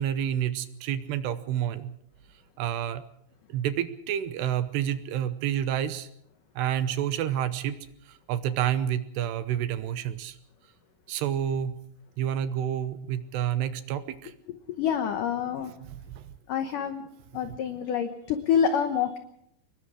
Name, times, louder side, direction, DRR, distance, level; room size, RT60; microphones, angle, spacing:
voice 1, 0.0-1.9 2.6-3.0 3.5-6.1 6.6-7.8 8.1-10.4 11.1-11.7 12.2-14.3 16.0-16.2, right 10 dB, 75° right, 12 dB, 2.7 m, -29 dB
voice 2, 14.7-15.7 16.5-17.0 17.3-19.2, left 8 dB, 80° left, 8 dB, 1.9 m, -27 dB
25.0 x 21.5 x 4.9 m, 0.72 s
omnidirectional pair, 5.3 m